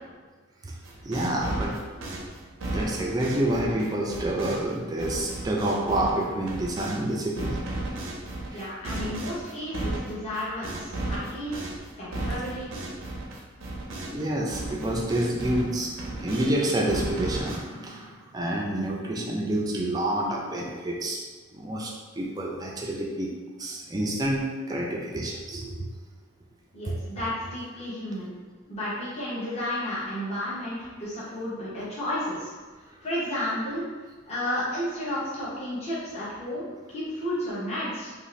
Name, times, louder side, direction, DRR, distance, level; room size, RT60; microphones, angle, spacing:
sound 1, 0.8-7.0 7.4-14.2 14.5-16.5 16.9-17.6, right 2 dB, 75° right, 0.5 m, -34 dB
voice 1, 1.0-1.8 2.7-7.6 8.5-8.6 14.1-21.2 21.5-23.3 23.6-25.9 26.9-27.0, right 1 dB, 20° right, -2 dB, 0.3 m, -28 dB
voice 2, 8.5-11.6 12.0-12.7 26.7-28.3 28.7-32.5 33.0-33.8 34.3-38.1, left 1 dB, 30° left, -9 dB, 0.8 m, -32 dB
2.5 x 2.4 x 3.1 m, 1.4 s
head